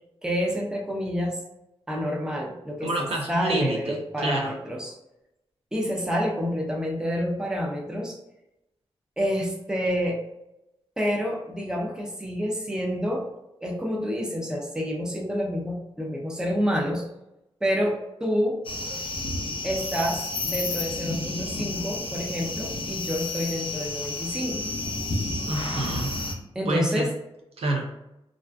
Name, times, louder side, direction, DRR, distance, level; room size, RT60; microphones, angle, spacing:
voice 1, 0.2-1.4 1.9-5.0 5.7-8.2 9.2-10.2 11.0-13.3 13.6-17.1 17.6-18.6 19.6-20.2 20.5-24.6 26.5-27.1, equal, 5° right, -1 dB, 0.5 m, -28 dB
voice 2, 2.8-4.5 25.4-26.1 26.7-27.1 27.6-27.9, right 2 dB, 80° right, 1 dB, 0.5 m, -28 dB
sound 1, 18.6-26.3, left 2 dB, 60° left, 0.4 m, -31 dB
2.4 x 2.4 x 2.2 m, 0.90 s
wide cardioid pair, 90°, 10 cm